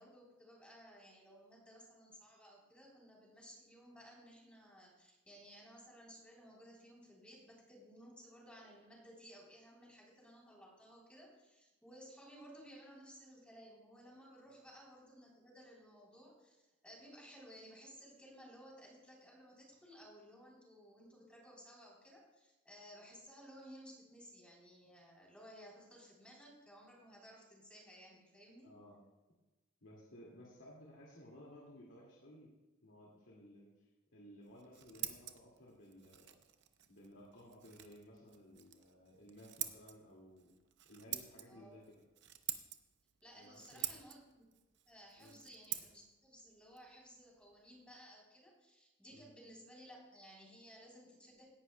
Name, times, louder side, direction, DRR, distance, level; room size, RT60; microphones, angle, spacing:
voice 1, 0.0-28.7 41.5-41.8 43.2-44.5 44.9-51.4, equal, 5° left, -4 dB, 3.3 m, -58 dB
voice 2, 28.6-29.0 29.8-32.5 32.8-36.3 36.9-40.5 40.8-42.0 43.4-44.0 45.2-45.4 49.1-49.3, equal, 75° left, -4 dB, 2.1 m, -57 dB
Scissors, 34.4-48.0, right 12 dB, 60° right, 0.7 m, -48 dB
17.5 x 10.5 x 2.2 m, 1.1 s
head